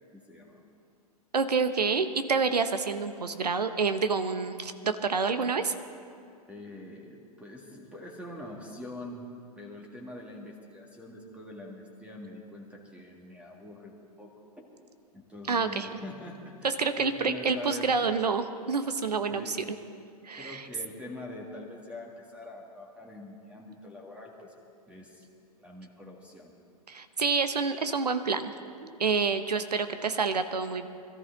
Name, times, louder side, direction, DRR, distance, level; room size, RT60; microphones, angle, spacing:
voice 1, 0.1-0.6 6.5-14.7 15.1-17.9 19.3-19.7 20.3-24.5 24.9-25.2 25.6-26.5, left 1 dB, 5° right, 0 dB, 1.9 m, -44 dB
voice 2, 1.3-5.7 15.5-15.9 16.6-19.4 20.2-20.7 26.9-28.5 28.8-30.9, right 5 dB, 85° right, 9 dB, 0.9 m, -28 dB
21.5 x 14.0 x 3.9 m, 2.4 s
figure-of-eight pair, 105°, 20 cm